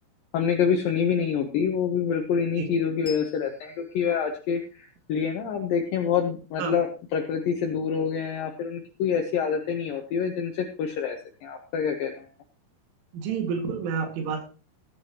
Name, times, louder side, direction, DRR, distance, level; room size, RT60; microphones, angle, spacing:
voice 1, 0.3-12.3, left 7 dB, 75° left, 3 dB, 2.1 m, -27 dB
Bell, 3.0-6.1, left 6 dB, ahead, 1.8 m, -50 dB
voice 2, 13.1-14.4, right 6 dB, 80° right, 3 dB, 4.4 m, -29 dB
17.5 x 9.6 x 2.9 m, 0.35 s
omnidirectional pair, 5.5 m